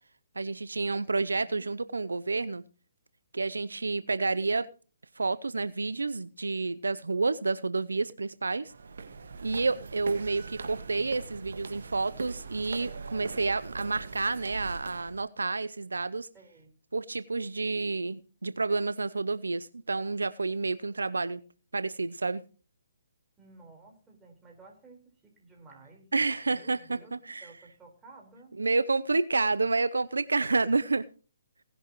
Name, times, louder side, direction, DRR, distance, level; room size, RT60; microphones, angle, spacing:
voice 1, 0.4-2.6 3.3-4.7 5.2-8.7 9.4-16.3 16.9-21.4 21.7-22.4 26.1-27.5 28.6-31.0, right 3 dB, 85° right, 0.6 m, -29 dB
voice 2, 1.0-1.6 16.3-16.7 23.4-26.1 26.4-28.6, right 3 dB, 10° right, 4.4 m, -54 dB
sound 1, 8.6-15.2, right 4 dB, 70° right, 1.8 m, -41 dB
18.0 x 11.0 x 3.1 m
hypercardioid pair, 145°, 0 cm